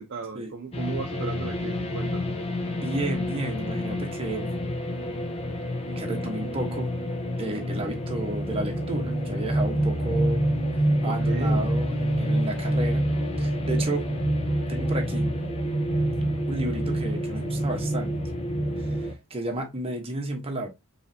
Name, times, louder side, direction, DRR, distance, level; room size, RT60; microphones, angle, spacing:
voice 1, 0.0-2.3 11.1-11.7, right 4 dB, 50° right, 0.6 m, -35 dB
sound 1, 0.7-19.1, equal, 25° left, 0.8 m, -27 dB
voice 2, 2.3-4.5 6.0-6.9 7.4-10.5 10.7-13.1 13.4-14.1 14.7-15.3 16.5-18.1 18.8-20.7, right 1 dB, 25° right, 1.1 m, -32 dB
4.8 x 3.3 x 2.7 m
head